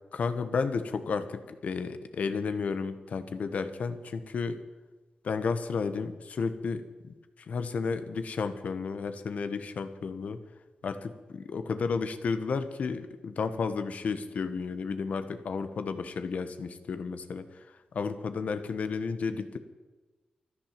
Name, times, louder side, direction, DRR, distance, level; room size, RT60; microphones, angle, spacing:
voice 1, 0.1-4.6 5.2-10.4 10.8-17.6 17.9-19.6, left 5 dB, 65° left, 10 dB, 1.2 m, -32 dB
13.5 x 12.0 x 7.5 m, 1.2 s
wide cardioid pair, 125°, 3 cm